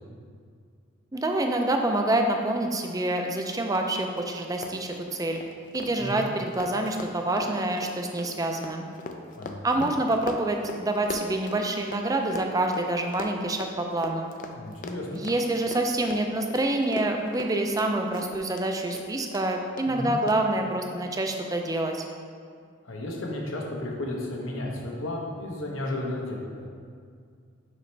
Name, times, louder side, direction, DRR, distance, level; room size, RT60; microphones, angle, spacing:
voice 1, 1.1-5.4 5.7-8.9 9.6-14.3 15.1-22.0, right 2 dB, 20° right, 3 dB, 0.4 m, -27 dB
Run, 3.7-3.8 4.1-4.2 4.5-12.0 12.3-18.7 18.9-19.4 19.8-19.9 20.3-20.4, left 3 dB, 40° left, 0.4 m, -39 dB
voice 2, 9.4-9.9 14.5-15.2 19.9-20.1 22.8-26.7, left 1 dB, 80° left, -1 dB, 1.0 m, -33 dB
6.4 x 5.4 x 3.3 m, 2.2 s
head